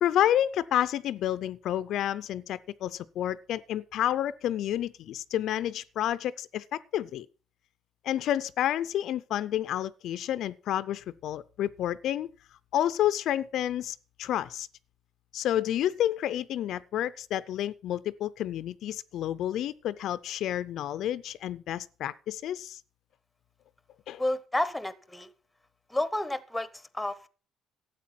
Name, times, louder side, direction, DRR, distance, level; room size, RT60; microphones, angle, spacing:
voice 1, 0.0-7.3 8.0-12.3 12.7-14.7 15.3-22.8 24.1-24.2, left 11 dB, 60° left, 0.5 m, -30 dB
voice 2, 24.2-25.3 25.9-27.3, left 1 dB, 5° left, 0.8 m, -31 dB
12.5 x 8.1 x 5.8 m
cardioid pair, 140°, 0 cm